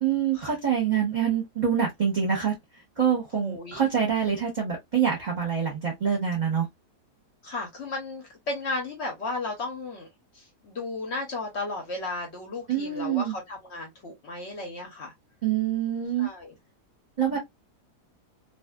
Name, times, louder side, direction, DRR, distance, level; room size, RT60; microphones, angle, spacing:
voice 1, 0.0-2.5 3.0-6.7 12.7-13.3 15.4-16.3 17.2-17.4, right 8 dB, 35° right, 0.9 m, -25 dB
voice 2, 3.4-3.9 7.4-10.1 10.3-15.1 16.2-16.5 17.3-17.4, left 2 dB, 55° left, 0.8 m, -34 dB
2.5 x 2.5 x 2.2 m
omnidirectional pair, 1.8 m